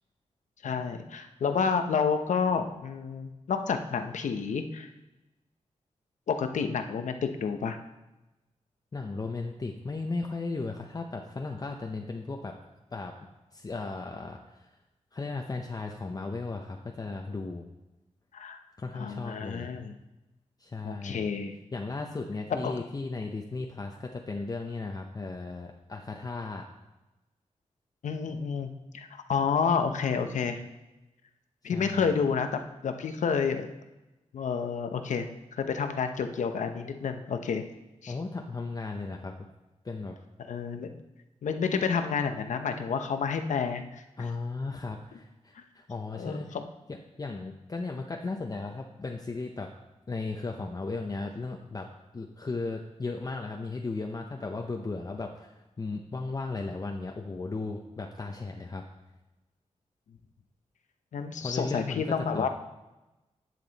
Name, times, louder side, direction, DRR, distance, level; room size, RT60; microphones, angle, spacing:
voice 1, 0.6-4.9 6.3-7.8 18.3-18.6 18.9-20.0 20.8-21.5 22.6-22.8 28.0-28.7 28.9-30.6 31.6-33.7 34.3-35.3 35.5-37.6 38.0-38.1 40.4-40.9 41.4-44.0 45.6-45.7 46.1-46.7 61.1-62.5, left 6 dB, 90° left, 7 dB, 0.8 m, -29 dB
voice 2, 8.9-12.5 12.9-13.1 13.5-14.7 15.1-17.7 18.8-19.7 20.6-21.2 21.7-26.6 31.7-32.1 38.1-39.3 39.8-40.2 44.2-46.6 47.2-49.7 50.1-51.9 52.1-58.8 61.4-62.0 62.3-62.5, left 3 dB, 30° left, 2 dB, 0.7 m, -36 dB
10.5 x 7.7 x 4.1 m, 1.0 s
wide cardioid pair, 100°, 12 cm